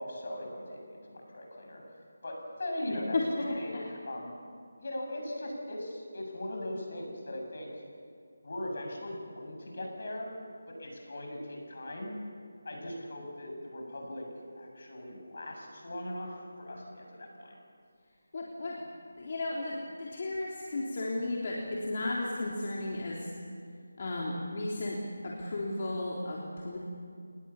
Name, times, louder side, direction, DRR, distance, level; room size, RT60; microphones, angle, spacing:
voice 1, 0.0-1.9 2.2-3.2 3.6-4.4 4.8-7.8 8.4-10.3 10.7-12.1 12.6-14.3 14.6-17.6, left 1 dB, 60° left, 1 dB, 7.7 m, -39 dB
voice 2, 2.9-3.8 18.3-18.9 19.2-23.3 24.0-26.8, left 2 dB, 40° left, -3 dB, 3.4 m, -34 dB
28.5 x 20.0 x 7.3 m, 2.3 s
figure-of-eight pair, 170°, 0 cm